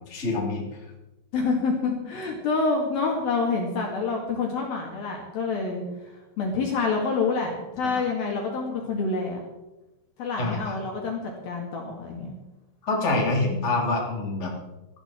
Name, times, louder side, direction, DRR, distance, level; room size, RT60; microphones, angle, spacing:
voice 1, 0.1-0.7 7.8-7.9 10.4-10.8 12.8-14.5, left 2 dB, 15° left, -2 dB, 3.3 m, -26 dB
voice 2, 1.3-9.4 10.2-12.4, left 4 dB, 55° left, -1 dB, 3.6 m, -27 dB
19.5 x 13.5 x 4.5 m, 1.0 s
omnidirectional pair, 5.4 m